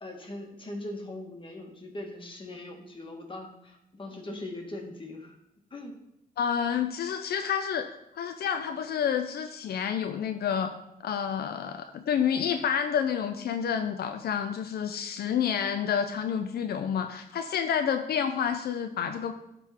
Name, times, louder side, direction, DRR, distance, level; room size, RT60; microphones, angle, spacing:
voice 1, 0.0-5.4 5.7-6.0, left 1 dB, 30° left, 2 dB, 1.8 m, -40 dB
voice 2, 6.4-7.9 8.1-10.7 11.0-19.4, left 8 dB, 85° left, 7 dB, 0.5 m, -29 dB
11.5 x 3.9 x 4.3 m, 0.82 s
cardioid pair, 75°, 16 cm